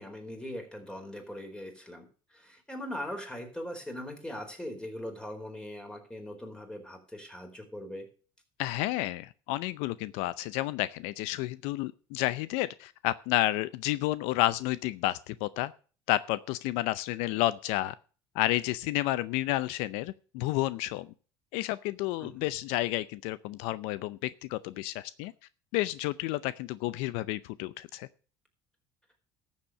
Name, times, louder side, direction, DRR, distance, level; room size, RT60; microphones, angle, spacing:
voice 1, 0.0-8.1 22.2-22.5, left 1 dB, 10° left, 4 dB, 4.4 m, -41 dB
voice 2, 8.6-15.7 16.1-17.9 18.3-21.1 21.5-25.3 25.7-28.1, left 16 dB, 75° left, 17 dB, 0.6 m, -31 dB
13.0 x 7.3 x 6.4 m, 0.39 s
supercardioid pair, 90°, 11 cm